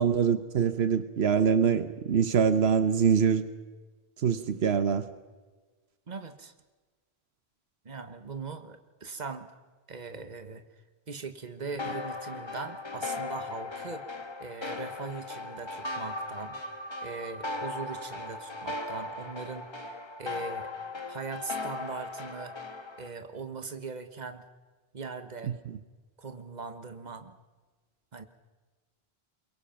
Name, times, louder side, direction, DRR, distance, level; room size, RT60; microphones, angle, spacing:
voice 1, 0.0-3.5 4.2-5.0 25.5-25.6, right 7 dB, 85° right, 12 dB, 1.2 m, -24 dB
voice 2, 6.1-6.5 7.8-9.6 9.9-10.6 11.1-14.0 14.4-16.6 17.0-20.7 21.1-22.5 23.0-24.4 24.9-25.5 26.2-27.4 28.1-28.2, right 4 dB, 45° right, 9 dB, 1.5 m, -40 dB
sound 1, 11.8-23.1, left 3 dB, 25° left, 1.3 m, -38 dB
23.0 x 22.5 x 5.9 m, 1.3 s
omnidirectional pair, 1.0 m